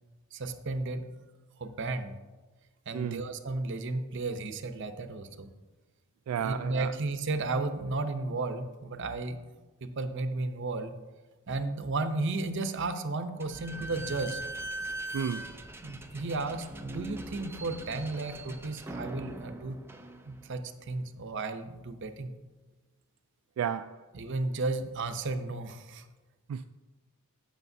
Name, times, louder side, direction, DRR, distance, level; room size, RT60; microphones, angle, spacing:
voice 1, 0.3-1.1 1.6-2.1 2.9-5.5 6.4-9.4 9.8-11.0 11.5-14.4 15.8-19.8 20.3-22.3 24.1-26.0, right 3 dB, 55° right, 0.7 m, -33 dB
voice 2, 6.3-6.9 15.1-15.5 23.6-24.0 26.5-26.6, right 8 dB, 80° right, 0.3 m, -32 dB
Slam / Squeak, 13.4-20.7, right 2 dB, 10° right, 0.5 m, -41 dB
15.0 x 6.5 x 2.7 m
head